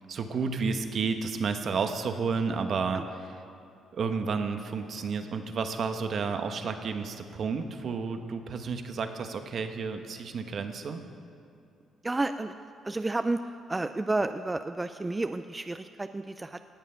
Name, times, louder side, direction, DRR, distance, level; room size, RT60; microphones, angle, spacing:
voice 1, 0.1-3.3 3.9-11.0, right 5 dB, 55° right, 7 dB, 1.0 m, -31 dB
voice 2, 12.0-12.5 12.8-13.4 13.7-16.7, right 2 dB, 20° right, 9 dB, 0.3 m, -31 dB
18.0 x 7.4 x 5.6 m, 2.5 s
cardioid pair, 90°, 0 cm